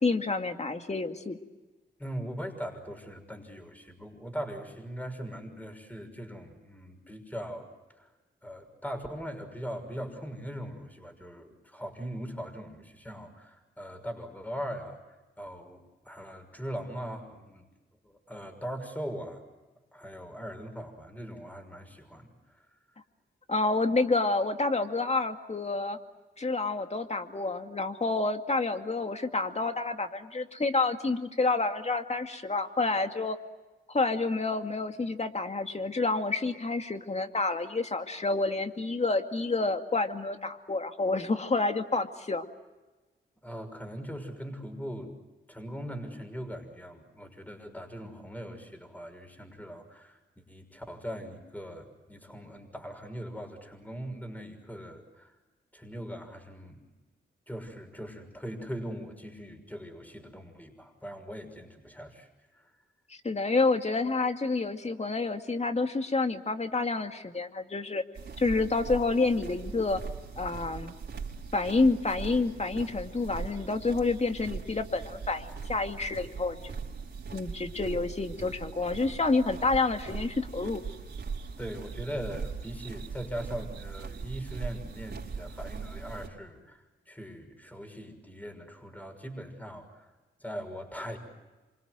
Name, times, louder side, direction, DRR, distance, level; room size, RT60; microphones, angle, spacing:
voice 1, 0.0-1.4 23.5-26.0 26.4-33.4 33.9-42.4 63.1-68.0 68.4-70.0 70.4-70.9 71.5-76.7 77.3-80.8, left 3 dB, 35° left, 6 dB, 2.3 m, -29 dB
voice 2, 2.0-8.1 8.4-17.7 18.0-19.4 19.9-22.7 43.4-45.1 45.5-55.4 55.7-56.9 57.5-62.7 81.6-90.1 90.4-91.2, equal, 10° left, 5 dB, 6.0 m, -40 dB
sound 1, 68.1-86.3, right 5 dB, 55° right, 4.7 m, -40 dB
28.0 x 25.0 x 7.8 m, 1.2 s
cardioid pair, 60°, 20 cm